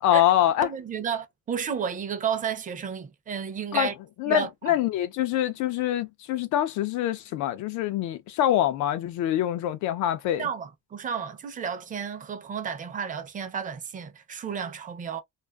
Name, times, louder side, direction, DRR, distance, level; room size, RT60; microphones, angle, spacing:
voice 1, 0.0-0.7 3.7-3.9 4.2-10.5, left 12 dB, 80° left, 0.4 m, -25 dB
voice 2, 0.6-3.9 4.3-4.7 10.4-15.2, right 7 dB, 30° right, 0.5 m, -32 dB
2.4 x 2.3 x 2.3 m
cardioid pair, 150°, 29 cm